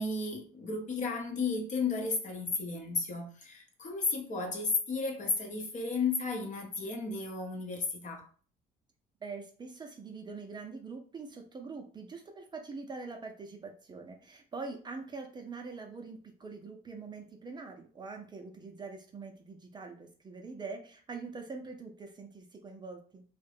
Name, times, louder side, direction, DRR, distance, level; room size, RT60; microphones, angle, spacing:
voice 1, 0.0-8.2, left 4 dB, 45° left, 0.8 m, -33 dB
voice 2, 9.2-23.2, right 4 dB, 25° right, 0.5 m, -44 dB
2.4 x 2.1 x 3.4 m
cardioid pair, 110°, 17 cm